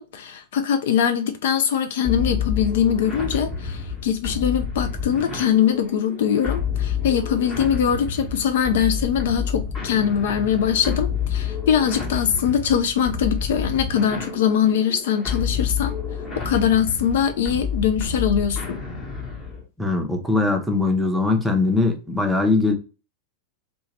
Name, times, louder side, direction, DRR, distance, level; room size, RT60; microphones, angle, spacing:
voice 1, 0.0-15.9 16.4-18.8, left 8 dB, 55° left, 0.3 m, -22 dB
sound 1, 2.0-19.6, left 6 dB, 25° left, 1.0 m, -29 dB
voice 2, 19.8-22.7, left 3 dB, 5° right, 0.6 m, -21 dB
2.8 x 2.1 x 2.8 m
figure-of-eight pair, 90°, 0 cm